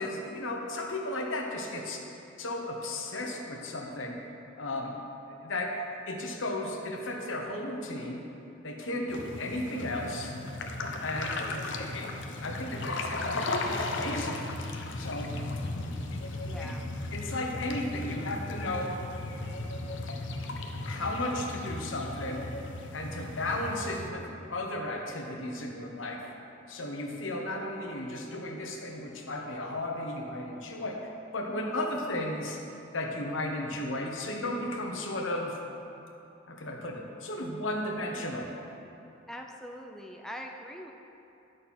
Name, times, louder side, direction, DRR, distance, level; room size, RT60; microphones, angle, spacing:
voice 1, 0.0-2.0 2.4-4.2 4.6-5.0 5.3-5.7 6.1-8.2 8.6-10.3 11.0-14.5 15.0-15.4 16.1-16.2 16.6-16.7 17.1-18.9 20.8-22.5 22.9-26.2 26.7-32.6 32.9-35.6 36.5-38.5, left 1 dB, 85° left, 1 dB, 1.1 m, -34 dB
sound 1, 9.1-24.1, left 2 dB, 70° left, 0.7 m, -36 dB
voice 2, 16.4-16.8 39.3-40.9, equal, ahead, 1 dB, 0.4 m, -42 dB
11.0 x 6.4 x 4.3 m, 2.8 s
head